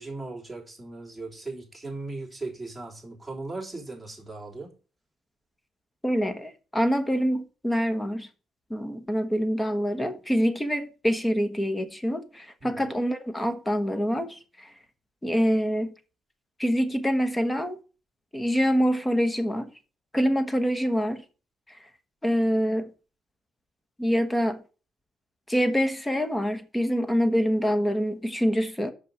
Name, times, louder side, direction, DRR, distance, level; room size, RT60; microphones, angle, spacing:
voice 1, 0.0-4.7 12.6-12.9, right 2 dB, 5° right, 3.3 m, -38 dB
voice 2, 6.0-8.3 8.7-14.7 15.2-15.9 16.6-17.8 18.3-19.7 20.1-21.2 22.2-22.9 24.0-24.6 25.5-28.9, equal, 10° left, 1.1 m, -25 dB
6.3 x 5.5 x 5.7 m
cardioid pair, 90°, 0 cm